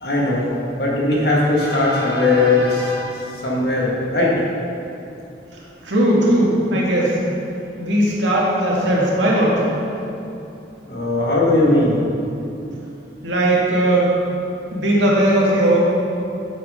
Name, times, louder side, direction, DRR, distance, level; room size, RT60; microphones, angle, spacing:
voice 1, 0.0-4.3 10.9-12.0, left 2 dB, 60° left, -5 dB, 1.8 m, -19 dB
voice 2, 5.8-7.2 7.8-9.6 13.2-14.1 14.7-15.8, right 1 dB, 85° right, -5 dB, 1.9 m, -17 dB
9.2 x 7.5 x 3.7 m, 2.8 s
head